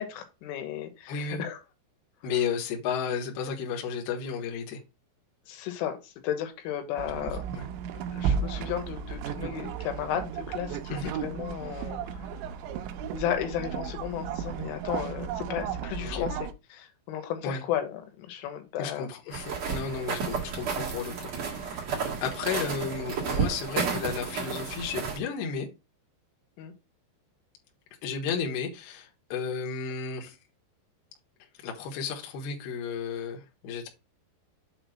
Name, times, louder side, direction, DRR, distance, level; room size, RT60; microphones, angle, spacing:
voice 1, 0.0-1.6 5.5-7.4 8.1-10.8 11.1-12.2 13.1-16.4 16.7-19.1 26.6-26.7, left 10 dB, 85° left, 7 dB, 3.6 m, -34 dB
voice 2, 1.1-1.4 2.2-4.8 7.5-7.7 10.9-11.1 16.1-16.3 17.4-17.6 18.8-21.8 22.2-25.7 28.0-30.4 31.6-33.9, left 6 dB, 70° left, 2 dB, 2.8 m, -33 dB
sound 1, 7.0-16.5, right 7 dB, 80° right, 3.0 m, -34 dB
sound 2, 19.3-25.2, right 5 dB, 50° right, 2.1 m, -32 dB
7.6 x 2.9 x 5.8 m, 0.27 s
omnidirectional pair, 5.4 m